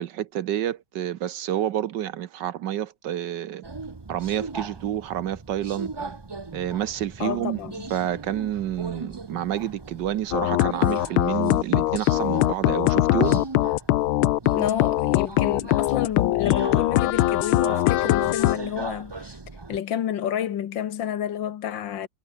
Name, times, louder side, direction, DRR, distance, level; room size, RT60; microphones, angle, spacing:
voice 1, 0.0-3.6 4.1-6.2 6.5-7.6 7.9-13.5, right 11 dB, 65° right, 1.3 m, -29 dB
Subway metro underground, 3.6-19.8, right 3 dB, 35° right, 0.4 m, -39 dB
voice 2, 7.2-7.9 14.5-19.4 19.7-22.1, left 10 dB, 70° left, 1.7 m, -30 dB
sound 1, 10.3-18.6, left 16 dB, 90° left, 1.5 m, -21 dB
omnidirectional pair, 2.2 m